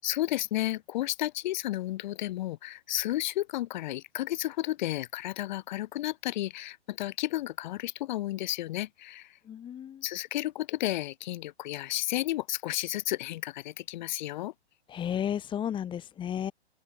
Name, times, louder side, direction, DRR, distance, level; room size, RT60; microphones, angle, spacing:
voice 1, 0.0-9.4 10.0-14.5, left 15 dB, 45° left, 7.6 m, -32 dB
voice 2, 9.5-10.0 14.9-16.5, left 9 dB, 15° left, 4.0 m, -33 dB
hypercardioid pair, 145°, 33 cm